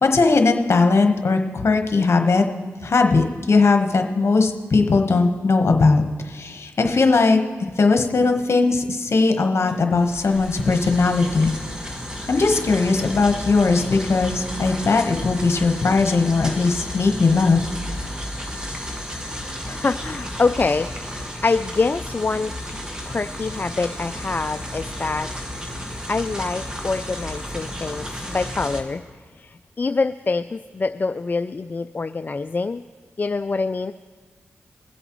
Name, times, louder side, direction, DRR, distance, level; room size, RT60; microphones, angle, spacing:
voice 1, 0.0-2.4 2.8-11.5 12.3-17.7, left 3 dB, 55° left, 5 dB, 1.2 m, -19 dB
sound 1, 9.7-28.8, equal, 15° right, 1.7 m, -33 dB
voice 2, 19.2-22.5 23.1-25.4 26.1-29.0 29.4-32.8 33.2-33.9, left 3 dB, 35° left, 9 dB, 0.3 m, -25 dB
21.5 x 7.9 x 3.1 m, 1.5 s
cardioid pair, 45°, 5 cm